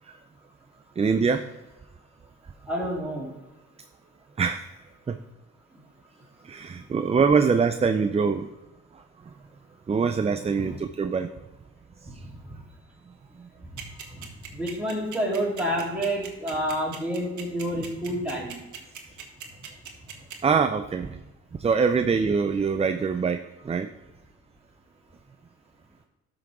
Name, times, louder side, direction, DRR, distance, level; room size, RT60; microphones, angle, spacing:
voice 1, 1.0-1.5 4.4-4.6 5.1-5.2 6.4-8.5 9.9-11.3 20.4-21.1 21.6-23.9, right 5 dB, 20° right, 9 dB, 0.4 m, -23 dB
voice 2, 2.7-3.3 10.6-10.8 12.1-12.2 14.1-14.2 14.5-18.6, equal, 5° right, -4 dB, 3.2 m, -29 dB
sound 1, 13.8-20.3, right 8 dB, 75° right, 1.5 m, -39 dB
12.5 x 5.9 x 3.6 m, 1.1 s
cardioid pair, 90°, 30 cm